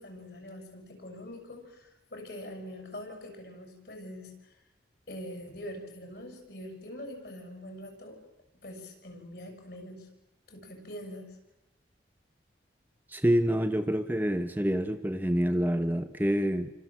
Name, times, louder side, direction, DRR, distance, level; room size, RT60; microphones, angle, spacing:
voice 1, 0.0-4.6 5.1-8.2 8.6-10.1 10.5-11.4, left 1 dB, 55° left, 5 dB, 7.3 m, -44 dB
voice 2, 13.1-16.7, equal, 10° right, 7 dB, 1.2 m, -27 dB
29.5 x 25.5 x 7.6 m, 0.92 s
head